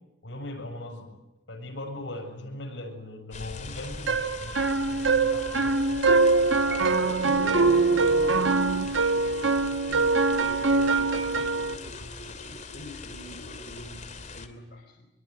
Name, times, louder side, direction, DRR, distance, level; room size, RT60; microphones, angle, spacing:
voice 1, 0.2-1.1 1.5-6.7, left 1 dB, 75° left, 3 dB, 7.2 m, -40 dB
sound 1, 3.3-14.5, left 3 dB, 40° left, 2.8 m, -41 dB
sound 2, 4.1-11.7, right 3 dB, 85° right, 1.3 m, -23 dB
Piano, 6.7-7.6, right 3 dB, 65° right, 6.2 m, -41 dB
voice 2, 7.0-15.1, left 1 dB, 60° left, 1 dB, 4.0 m, -42 dB
25.0 x 23.5 x 9.7 m, 0.93 s
head